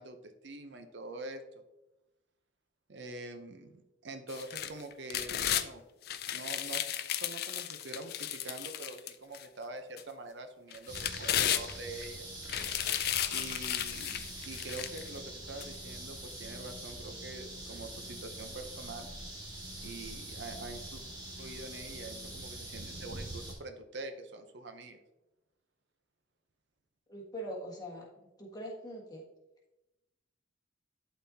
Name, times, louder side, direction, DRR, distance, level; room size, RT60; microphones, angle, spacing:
voice 1, 0.0-1.4 2.9-5.8 6.3-6.9 7.2-12.2 13.3-19.1 19.8-21.0 21.4-25.0, right 2 dB, 65° right, 7 dB, 0.7 m, -45 dB
sound 1, 4.3-5.7 6.1-9.4 10.0-10.1 10.7-12.0 12.4-15.1 15.6-15.7, left 11 dB, 50° left, 0.4 m, -34 dB
sound 2, 10.9-23.5, right 1 dB, 20° right, 1.6 m, -44 dB
voice 2, 27.1-28.1 28.4-29.2, equal, 20° left, -2 dB, 1.4 m, -42 dB
11.5 x 4.1 x 2.7 m, 0.98 s
head